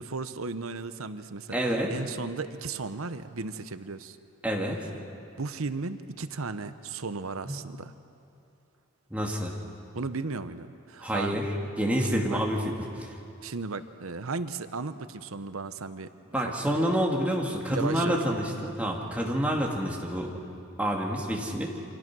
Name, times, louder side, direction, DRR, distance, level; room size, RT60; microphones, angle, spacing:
voice 1, 0.0-1.6 1.9-4.2 5.4-7.9 9.9-11.4 12.0-12.4 13.4-16.1 16.4-16.8 17.7-18.7, right 4 dB, 90° right, 11 dB, 0.9 m, -35 dB
voice 2, 1.5-1.9 4.4-4.8 7.5-7.6 9.1-9.5 11.0-11.4 11.8-13.1 16.3-20.3 20.8-21.7, equal, 5° right, -1 dB, 2.6 m, -28 dB
28.5 x 25.5 x 6.2 m, 2.6 s
head